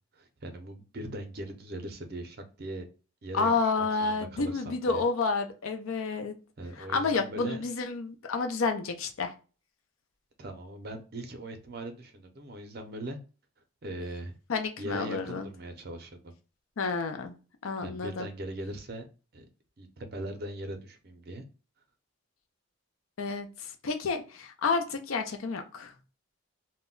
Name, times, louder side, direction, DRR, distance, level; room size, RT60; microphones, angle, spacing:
voice 1, 0.2-2.8 3.2-3.5 4.0-5.0 6.6-7.6 10.4-13.2 13.8-14.3 14.8-16.2 17.8-19.1 19.3-19.5 19.8-21.4, right 1 dB, 45° right, 6 dB, 0.5 m, -40 dB
voice 2, 3.3-6.4 6.8-9.3 14.5-15.5 16.8-17.3 17.6-18.3 23.2-25.9, left 4 dB, 75° left, 6 dB, 0.5 m, -30 dB
2.1 x 2.1 x 3.6 m, 0.34 s
head